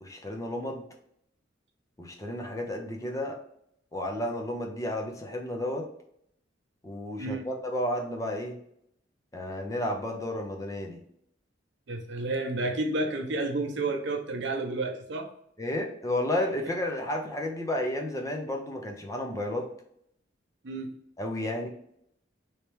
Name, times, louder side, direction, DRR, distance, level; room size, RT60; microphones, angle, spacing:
voice 1, 0.0-0.8 2.0-3.4 3.9-5.9 6.8-8.6 9.3-11.0 15.6-19.7 21.2-21.7, left 1 dB, 15° left, 2 dB, 0.5 m, -32 dB
voice 2, 11.9-15.3 20.6-20.9, right 2 dB, 65° right, 4 dB, 0.6 m, -31 dB
3.2 x 2.9 x 3.2 m, 0.72 s
head